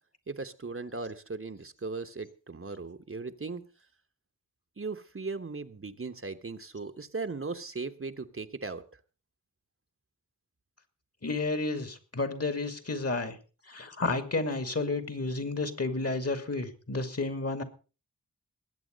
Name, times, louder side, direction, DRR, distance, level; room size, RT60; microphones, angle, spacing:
voice 1, 0.3-3.6 4.8-8.8, right 3 dB, 40° right, 9 dB, 1.2 m, -38 dB
voice 2, 11.2-13.4 13.7-17.6, left 3 dB, 45° left, 9 dB, 2.6 m, -31 dB
20.0 x 8.6 x 5.3 m, 0.35 s
wide cardioid pair, 55°, 33 cm